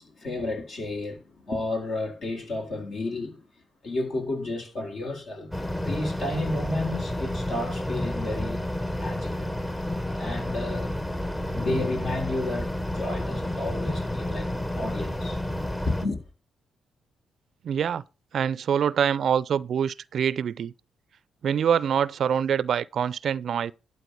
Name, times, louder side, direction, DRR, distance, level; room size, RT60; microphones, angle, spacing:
voice 1, 0.0-3.5 3.8-5.5 5.8-9.5 10.2-10.9 11.5-15.4 15.9-16.2, left 2 dB, 60° left, 4.0 m, -32 dB
sound 1, 5.5-16.1, left 1 dB, 15° left, 1.2 m, -30 dB
voice 2, 17.6-18.0 18.3-20.7 21.4-23.7, right 8 dB, 60° right, 0.4 m, -25 dB
12.0 x 4.2 x 7.7 m
hypercardioid pair, 45°, 0 cm